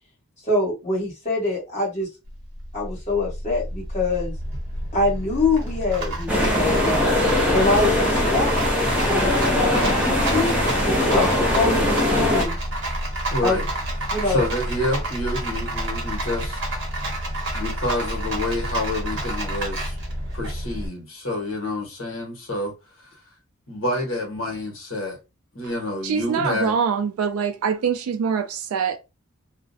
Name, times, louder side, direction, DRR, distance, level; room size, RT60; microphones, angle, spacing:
voice 1, 0.4-2.1 2.7-4.3 4.9-7.0 7.5-12.6 13.4-13.6 14.1-14.5, left 2 dB, 30° left, 1.2 m, -25 dB
Rattle, 2.3-20.9, right 1 dB, 55° right, 0.9 m, -29 dB
sound 1, 6.3-12.4, left 1 dB, 5° right, 0.5 m, -21 dB
voice 2, 13.3-13.7 14.3-16.6 17.5-20.0 20.3-22.7 23.7-25.2 25.5-26.8, left 1 dB, 70° left, 1.1 m, -28 dB
voice 3, 26.0-29.0, right 6 dB, 85° right, 0.3 m, -24 dB
2.4 x 2.0 x 2.5 m
head